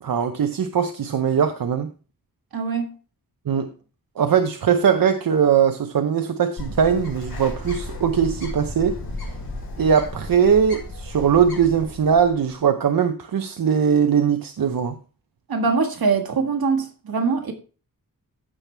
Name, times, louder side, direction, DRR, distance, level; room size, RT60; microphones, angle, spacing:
voice 1, 0.0-1.9 3.5-3.7 4.2-9.0 9.8-15.0, right 7 dB, 75° right, 0.8 m, -20 dB
voice 2, 2.5-2.9 15.5-17.5, right 4 dB, 90° right, 1.9 m, -23 dB
Bird, 6.6-12.5, left 1 dB, 90° left, 5.2 m, -34 dB
15.0 x 6.0 x 3.4 m
wide cardioid pair, 115°, 35 cm